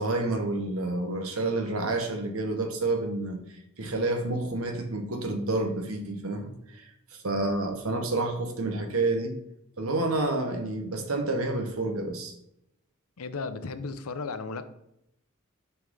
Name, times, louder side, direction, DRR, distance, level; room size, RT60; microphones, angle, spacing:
voice 1, 0.0-3.4 3.8-9.3 9.8-12.3, right 2 dB, 80° right, 5 dB, 1.2 m, -29 dB
voice 2, 13.2-14.6, left 4 dB, 85° left, 11 dB, 0.6 m, -35 dB
6.3 x 5.7 x 3.8 m, 0.80 s
head